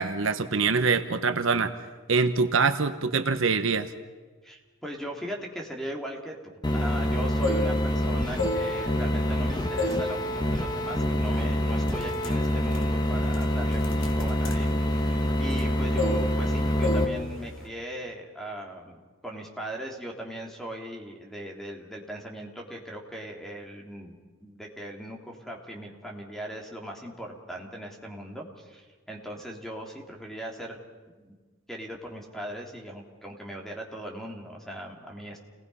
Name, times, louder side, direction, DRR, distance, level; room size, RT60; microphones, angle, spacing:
voice 1, 0.0-1.7 2.1-3.9, right 4 dB, 70° right, 9 dB, 1.0 m, -24 dB
voice 2, 4.4-30.8 31.2-31.4 31.7-35.4, right 1 dB, ahead, 0 dB, 3.0 m, -39 dB
sound 1, 6.6-17.0, left 1 dB, 20° left, 1.4 m, -26 dB
sound 2, 7.2-8.0 8.3-9.4 9.8-10.1 10.5-10.7 11.3-11.5 11.8-15.7 16.0-16.5 16.8-17.1 17.4-17.7, left 1 dB, 70° left, 2.7 m, -31 dB
29.0 x 19.5 x 5.6 m, 1.4 s
head